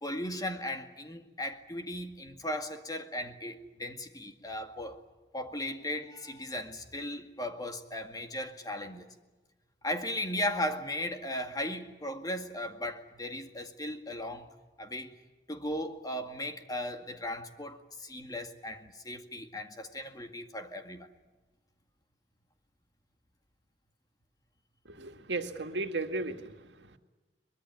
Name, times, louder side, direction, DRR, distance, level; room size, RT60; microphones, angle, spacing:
voice 1, 0.0-5.0 5.3-9.1 9.8-14.5 14.8-15.2 15.5-21.1, left 1 dB, 20° left, 2.0 m, -37 dB
voice 2, 24.9-27.0, right 3 dB, 85° right, 2.0 m, -36 dB
23.0 x 21.5 x 9.3 m
head